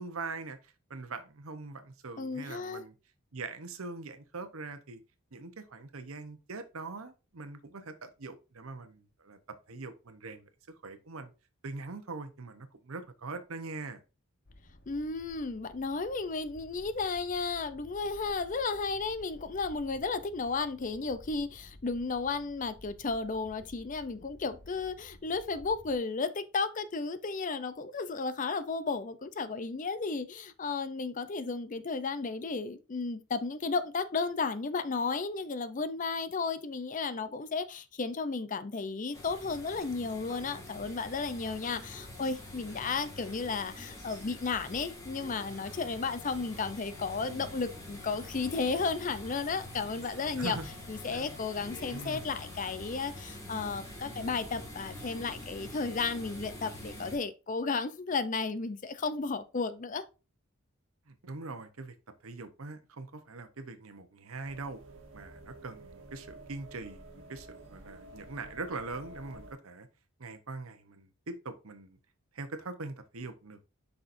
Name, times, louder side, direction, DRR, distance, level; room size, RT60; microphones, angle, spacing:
voice 1, 0.0-2.9 3.3-5.0 5.3-9.4 9.7-10.5 10.8-11.3 11.6-14.0 50.4-50.7 51.1-51.3 51.9-52.4 61.1-61.9 62.2-64.8 65.1-69.9 70.2-72.0 72.3-73.6, right 3 dB, 85° right, 0.9 m, -42 dB
voice 2, 2.2-2.8 14.9-50.6 50.9-60.0, left 4 dB, 40° left, 0.5 m, -33 dB
sound 1, 14.4-26.0, left 1 dB, 55° left, 1.1 m, -54 dB
sound 2, 39.1-57.2, left 1 dB, 15° left, 1.8 m, -45 dB
sound 3, 64.4-69.5, right 1 dB, 60° right, 1.9 m, -51 dB
6.7 x 5.8 x 2.6 m
head